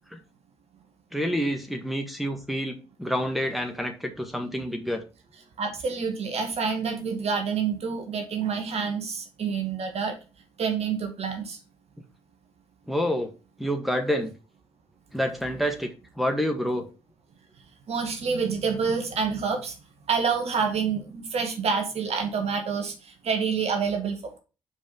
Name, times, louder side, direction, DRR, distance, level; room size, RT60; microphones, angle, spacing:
voice 1, 1.1-5.0 12.9-13.3 13.6-14.3 15.1-16.9, equal, ahead, 3 dB, 1.7 m, -28 dB
voice 2, 5.6-10.2 10.6-11.6 17.9-19.8 20.1-24.2, right 5 dB, 60° right, 4 dB, 2.0 m, -27 dB
5.4 x 5.1 x 5.5 m, 0.32 s
hypercardioid pair, 50°, 12 cm